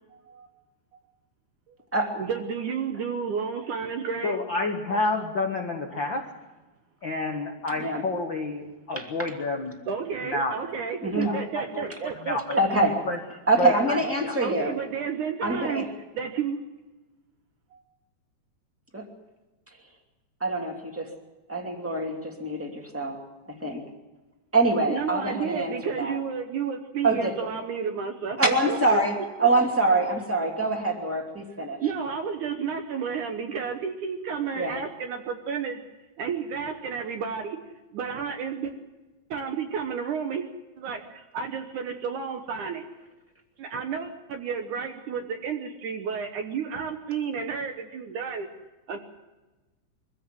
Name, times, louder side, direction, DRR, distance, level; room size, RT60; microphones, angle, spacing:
voice 1, 0.1-0.5 2.2-4.4 9.9-12.6 14.4-15.9 16.2-16.6 17.7-17.8 24.9-29.2 31.8-35.8 36.2-37.6 37.9-38.7 39.3-40.5 40.8-42.9 43.6-48.5 48.9-49.0, right 6 dB, 65° right, 5 dB, 2.2 m, -31 dB
voice 2, 4.2-6.3 7.0-9.8 10.2-10.5 11.2-12.6 13.0-13.2 13.6-14.0 14.2-14.4, left 2 dB, 60° left, 3 dB, 1.2 m, -29 dB
voice 3, 11.0-11.3 12.6-13.0 13.5-14.7 15.4-15.9 18.9-19.0 20.4-21.1 21.5-23.2 23.6-23.8 24.5-26.2 27.0-27.4 28.4-31.8 34.5-34.7, right 2 dB, 5° right, 2 dB, 1.7 m, -25 dB
23.5 x 16.0 x 7.6 m, 1.2 s
omnidirectional pair, 4.6 m